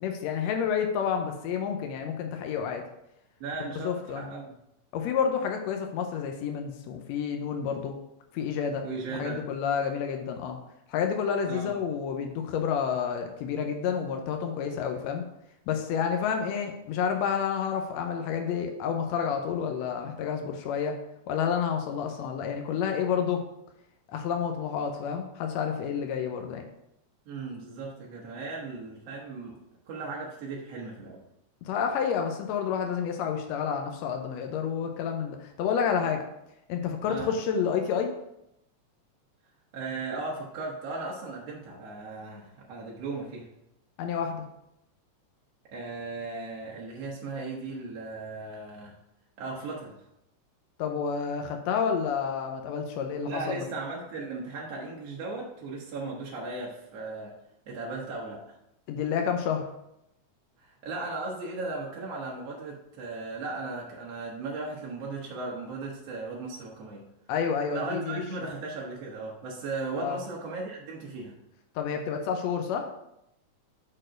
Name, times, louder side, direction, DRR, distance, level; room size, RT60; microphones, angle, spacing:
voice 1, 0.0-2.8 3.8-4.3 4.9-7.9 8.3-8.8 9.2-10.6 10.9-15.2 15.7-21.0 21.3-23.4 24.1-26.7 31.7-36.2 36.7-38.1 44.0-44.4 50.8-53.7 58.9-59.7 67.3-68.2 70.0-70.2 71.8-72.9, left 7 dB, 75° left, 4 dB, 1.7 m, -29 dB
voice 2, 3.4-4.6 8.8-9.4 11.5-11.8 27.3-29.6 29.9-31.2 37.1-37.3 39.7-43.5 45.7-49.0 49.4-49.9 53.3-57.3 57.7-58.4 60.6-67.0 67.7-71.3, right 3 dB, 65° right, -3 dB, 1.9 m, -37 dB
6.5 x 4.3 x 5.0 m, 0.83 s
omnidirectional pair, 3.5 m